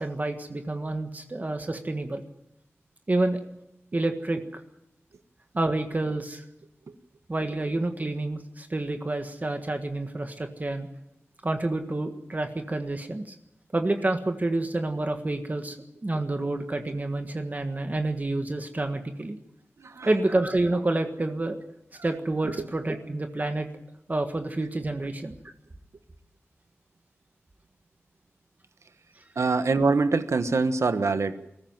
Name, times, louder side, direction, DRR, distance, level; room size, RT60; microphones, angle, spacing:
voice 1, 0.0-2.2 3.1-3.4 3.9-4.4 5.5-6.4 7.3-10.9 11.4-13.3 13.7-15.8 16.0-19.4 20.0-21.6 22.0-23.7 24.1-25.4 29.4-29.5, right 2 dB, 35° right, 6 dB, 1.6 m, -28 dB
voice 2, 29.4-31.4, right 4 dB, 85° right, 10 dB, 1.3 m, -24 dB
22.0 x 14.5 x 9.0 m, 0.85 s
wide cardioid pair, 90°, 5 cm